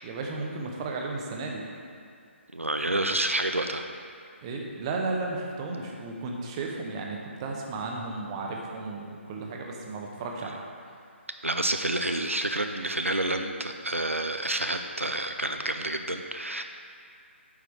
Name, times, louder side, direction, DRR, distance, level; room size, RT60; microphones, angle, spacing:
voice 1, 0.0-1.6 4.4-10.6, right 3 dB, 25° right, 0 dB, 0.9 m, -34 dB
voice 2, 2.5-3.9 11.4-16.6, right 1 dB, 90° right, 6 dB, 0.5 m, -29 dB
8.6 x 4.8 x 4.7 m, 2.4 s
figure-of-eight pair, 140°, 7 cm